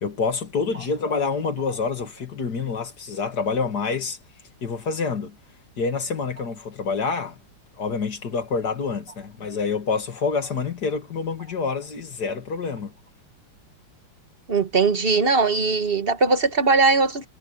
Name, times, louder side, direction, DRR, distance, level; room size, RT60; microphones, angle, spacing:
voice 1, 0.0-4.2 4.6-5.4 5.8-7.4 7.8-12.9, left 5 dB, 50° left, 2.7 m, -27 dB
voice 2, 14.5-17.3, right 4 dB, 30° right, 1.4 m, -20 dB
omnidirectional pair, 2.2 m